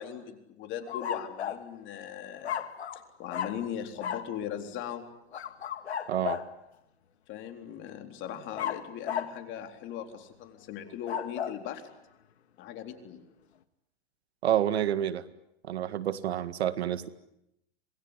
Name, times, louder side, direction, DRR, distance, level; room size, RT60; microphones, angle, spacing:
voice 1, 0.0-2.6 2.9-5.0 7.3-11.8 12.6-13.2, left 9 dB, 35° left, 6 dB, 3.9 m, -39 dB
sound 1, 0.9-1.7 2.4-3.0 3.3-3.6 4.0-4.3 5.3-6.5 8.6-9.4 10.9-11.6, left 9 dB, 90° left, 2.0 m, -34 dB
voice 2, 6.1-6.4 14.4-15.2 15.7-17.1, right 11 dB, 80° right, 13 dB, 1.9 m, -28 dB
27.0 x 20.5 x 9.9 m, 0.82 s
hypercardioid pair, 125°, 32 cm